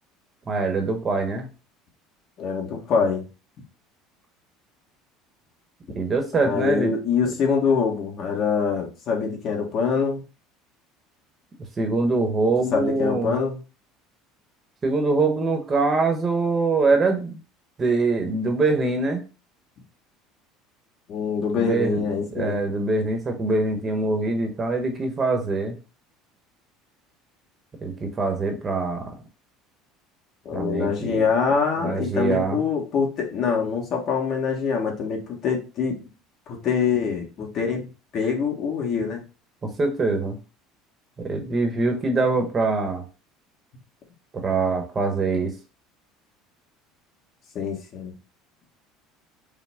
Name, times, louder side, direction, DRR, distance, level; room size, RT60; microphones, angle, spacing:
voice 1, 0.5-1.5 5.9-6.9 11.8-13.3 14.8-17.4 17.8-19.2 21.5-25.8 27.8-29.1 30.5-31.2 31.8-32.6 39.6-40.4 41.2-43.0 44.3-45.5, right 3 dB, 25° right, 5 dB, 1.0 m, -24 dB
voice 2, 2.4-3.2 6.3-10.2 12.7-13.6 21.1-22.7 30.4-36.0 36.5-37.9 38.1-39.2 47.5-48.1, left 6 dB, 50° left, 1 dB, 1.4 m, -24 dB
5.5 x 2.1 x 3.5 m, 0.32 s
supercardioid pair, 125°, 0 cm